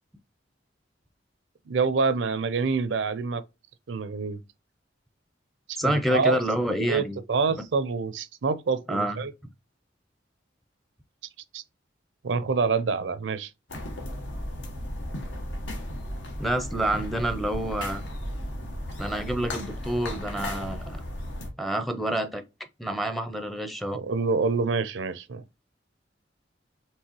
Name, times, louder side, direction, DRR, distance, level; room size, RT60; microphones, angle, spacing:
voice 1, 1.7-3.4 3.9-4.4 5.7-6.4 6.9-9.3 11.5-11.6 12.2-13.5 23.9-25.4, right 4 dB, 75° right, 0.5 m, -26 dB
voice 2, 5.8-7.2 8.9-9.2 16.4-18.0 19.0-20.8 21.6-22.4 22.8-24.0, right 1 dB, ahead, 0.5 m, -28 dB
sound 1, 13.7-21.5, left 1 dB, 80° left, 1.1 m, -35 dB
4.6 x 3.1 x 2.9 m
head